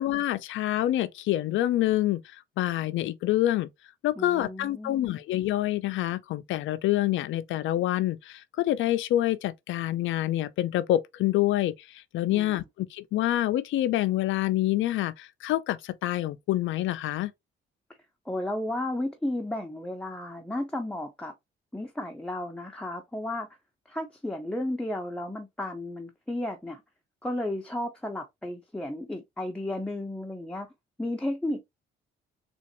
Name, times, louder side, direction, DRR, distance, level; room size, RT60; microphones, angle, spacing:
voice 1, 0.0-3.7 4.0-17.3, left 14 dB, 80° left, 0.5 m, -27 dB
voice 2, 4.2-5.2 12.3-12.6 18.3-21.3 21.7-23.5 23.9-26.8 27.2-30.7 31.0-31.6, left 1 dB, 5° left, 0.6 m, -33 dB
3.7 x 2.5 x 2.8 m
cardioid pair, 90°, 20 cm